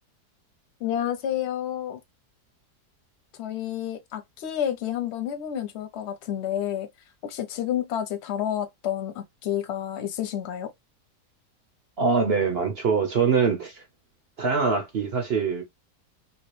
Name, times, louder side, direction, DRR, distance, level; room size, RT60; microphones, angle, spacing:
voice 1, 0.8-2.0 3.4-6.9 7.2-10.7, left 10 dB, 55° left, 0.8 m, -30 dB
voice 2, 12.0-13.8 14.4-15.6, right 5 dB, 50° right, 0.8 m, -23 dB
3.0 x 2.8 x 3.0 m
omnidirectional pair, 1.8 m